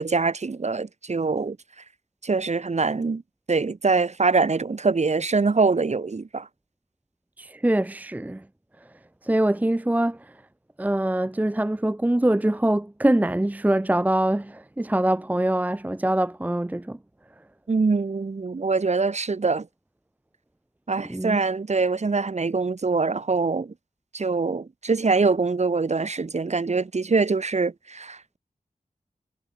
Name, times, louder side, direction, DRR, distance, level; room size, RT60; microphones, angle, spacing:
voice 1, 0.0-1.6 2.2-3.2 3.5-6.5 17.7-19.7 20.9-23.7 24.1-28.4, right 4 dB, 55° right, 4.7 m, -24 dB
voice 2, 7.4-8.4 9.2-10.2 10.8-17.0 21.1-21.4, right 1 dB, 10° right, 0.7 m, -23 dB
wide cardioid pair, 70°, 14 cm